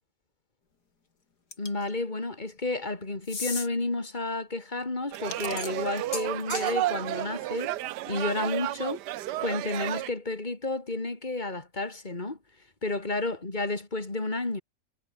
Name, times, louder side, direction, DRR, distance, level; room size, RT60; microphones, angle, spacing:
sound 1, 1.5-1.9 3.2-3.7 5.1-6.7, left 4 dB, 65° left, 3.5 m, -36 dB
voice 1, 1.6-7.7 8.1-9.0 9.4-12.4 12.8-14.6, left 2 dB, 25° left, 3.3 m, -31 dB
sound 2, 5.1-10.1, right 15 dB, 75° right, 1.2 m, -32 dB
omnidirectional pair, 1.8 m